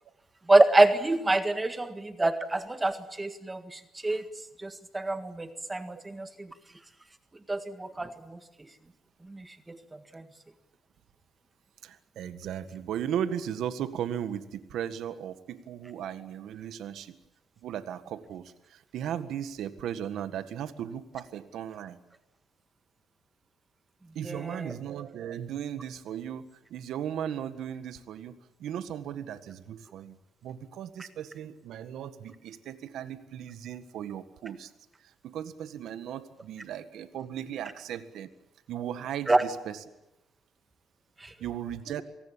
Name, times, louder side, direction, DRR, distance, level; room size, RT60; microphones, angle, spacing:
voice 1, 0.5-4.2 4.6-6.5 7.5-8.4 9.2-10.2 24.2-24.7 39.3-39.4 41.2-41.3, right 2 dB, 20° right, 9 dB, 1.7 m, -26 dB
voice 2, 11.8-17.2 17.6-22.0 24.2-30.2 30.4-34.7 35.2-38.3 38.7-39.8 41.4-42.0, right 9 dB, 80° right, 12 dB, 1.7 m, -36 dB
27.5 x 18.5 x 8.7 m, 0.94 s
cardioid pair, 90°, 0 cm